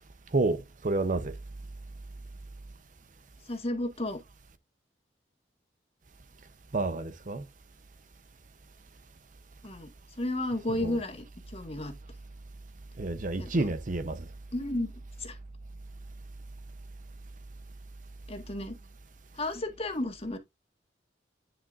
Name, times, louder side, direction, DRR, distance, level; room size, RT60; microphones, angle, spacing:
voice 1, 0.3-1.4 6.7-7.4 10.8-11.0 13.0-14.3, right 2 dB, 45° right, 0.8 m, -29 dB
voice 2, 3.5-4.2 9.6-9.9 10.2-11.9 13.4-13.7 14.5-14.9 15.2-15.4 18.3-18.8 19.3-20.4, left 1 dB, 35° left, 1.7 m, -33 dB
9.7 x 5.9 x 2.6 m
head